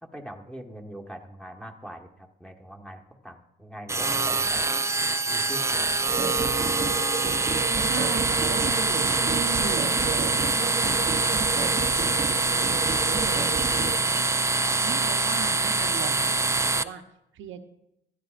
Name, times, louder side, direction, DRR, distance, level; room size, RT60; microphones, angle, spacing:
voice 1, 0.0-4.7 5.2-6.2 14.6-14.8, equal, 5° left, 3 dB, 1.5 m, -42 dB
sound 1, 3.9-16.8, right 3 dB, 15° right, 0.4 m, -25 dB
sound 2, 6.1-14.0, right 4 dB, 30° right, 0.8 m, -32 dB
voice 2, 7.8-14.3 14.8-17.0 17.3-17.6, right 8 dB, 75° right, 6 dB, 1.0 m, -39 dB
16.0 x 12.5 x 2.5 m, 0.83 s
cardioid pair, 90°, 20 cm